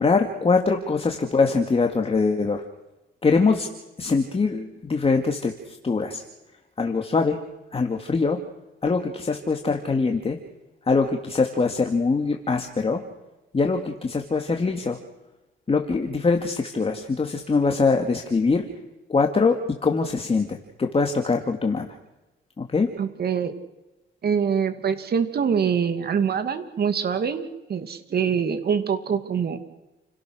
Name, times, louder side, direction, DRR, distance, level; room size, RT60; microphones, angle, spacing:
voice 1, 0.0-2.6 3.2-3.7 4.0-6.2 6.8-7.4 7.7-8.4 8.8-10.4 10.9-13.0 13.5-15.0 15.7-18.7 19.1-21.9 22.6-22.9, left 4 dB, 30° left, 3 dB, 2.4 m, -23 dB
voice 2, 23.0-23.5 24.2-27.4 27.7-29.6, right 7 dB, 50° right, 9 dB, 2.4 m, -24 dB
30.0 x 17.5 x 6.5 m, 1.0 s
cardioid pair, 90°, 20 cm